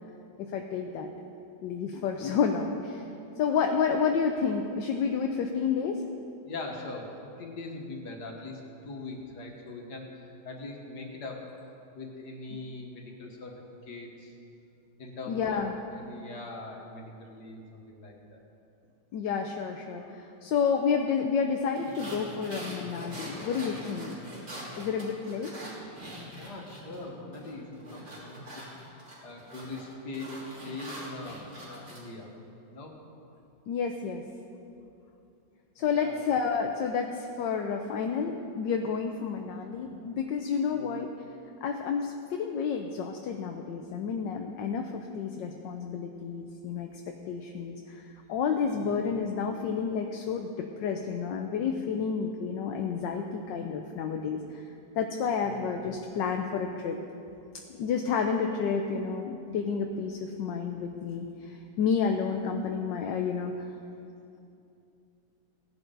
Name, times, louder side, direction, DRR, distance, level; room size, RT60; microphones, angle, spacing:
voice 1, 0.4-1.1 1.6-3.1 3.4-6.0 15.3-15.7 19.1-24.2 24.8-25.6 33.7-34.2 35.8-41.1 41.6-48.0 48.3-54.6 54.9-57.0 57.8-63.7, left 6 dB, 75° left, 3 dB, 1.4 m, -30 dB
voice 2, 6.4-11.5 11.9-14.3 15.0-18.4 24.2-24.4 26.3-30.4 30.6-32.3 32.7-32.9 35.8-36.2 40.7-40.9 48.7-48.9 55.4-55.7, left 3 dB, 60° left, 1 dB, 2.1 m, -42 dB
sound 1, 21.8-27.0 27.3-32.0, right 1 dB, 60° right, 3.8 m, -43 dB
18.0 x 10.5 x 3.9 m, 2.6 s
omnidirectional pair, 2.1 m